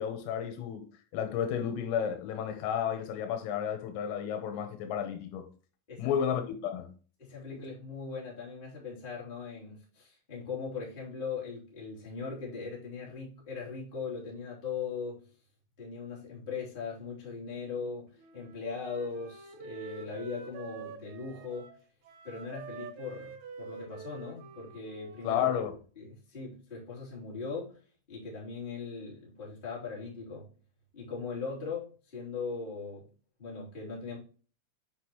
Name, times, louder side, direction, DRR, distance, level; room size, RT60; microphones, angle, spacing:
voice 1, 0.0-5.5 6.0-6.9 25.2-25.7, left 8 dB, 85° left, 3.8 m, -32 dB
voice 2, 7.2-15.2 15.8-21.7 22.2-25.5 26.0-27.8 28.1-30.5 30.9-33.0 33.4-34.2, left 5 dB, 15° left, 2.1 m, -39 dB
Wind instrument woodwind instrument, 18.2-25.9, right 5 dB, 75° right, 3.8 m, -47 dB
8.3 x 5.6 x 3.1 m
omnidirectional pair, 5.9 m